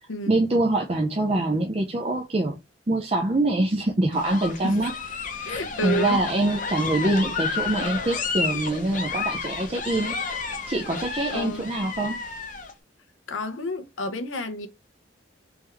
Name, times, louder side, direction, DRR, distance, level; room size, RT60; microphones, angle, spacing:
voice 1, 0.3-2.6 2.9-4.9 5.3-10.2 10.7-12.2, right 2 dB, 30° right, 0.5 m, -24 dB
sound 1, 4.1-12.7, left 5 dB, 40° left, 0.7 m, -31 dB
voice 2, 5.4-6.2 11.3-11.7 13.3-14.7, left 1 dB, 80° left, 0.7 m, -30 dB
3.5 x 3.4 x 3.1 m
head